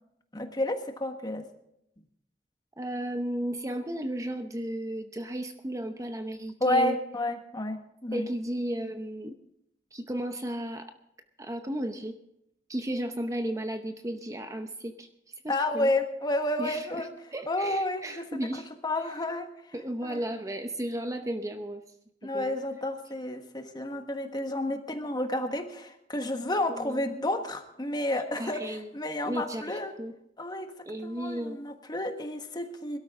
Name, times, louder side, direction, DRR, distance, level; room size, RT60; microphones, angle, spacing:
voice 1, 0.3-1.4 6.6-8.3 15.5-17.1 17.5-18.4 18.8-19.5 20.0-20.2 22.2-29.9 30.4-30.7 31.0-33.0, left 1 dB, 25° left, 6 dB, 1.4 m, -31 dB
voice 2, 2.8-7.0 8.1-9.4 9.9-10.9 11.4-12.2 12.7-15.1 15.4-15.9 16.6-17.1 17.3-18.6 19.7-21.8 22.3-22.5 26.7-27.0 28.4-28.9 29.2-30.1 30.8-31.6, right 1 dB, 20° right, 7 dB, 0.8 m, -34 dB
22.0 x 12.5 x 3.6 m, 0.78 s
head